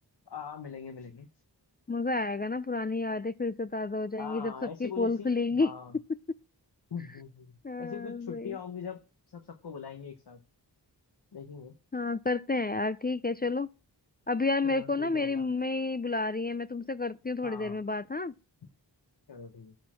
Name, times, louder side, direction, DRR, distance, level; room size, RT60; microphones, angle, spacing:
voice 1, 0.3-1.3 4.2-5.3 5.6-6.0 6.9-7.5 7.8-10.4 11.3-11.7 14.6-15.5 17.4-17.8 19.3-19.7, left 6 dB, 65° left, 1.0 m, -42 dB
voice 2, 1.9-4.5 4.8-5.7 7.6-8.6 11.9-13.7 14.3-18.3, left 3 dB, 25° left, 0.3 m, -30 dB
11.5 x 4.3 x 6.1 m
wide cardioid pair, 45°, 43 cm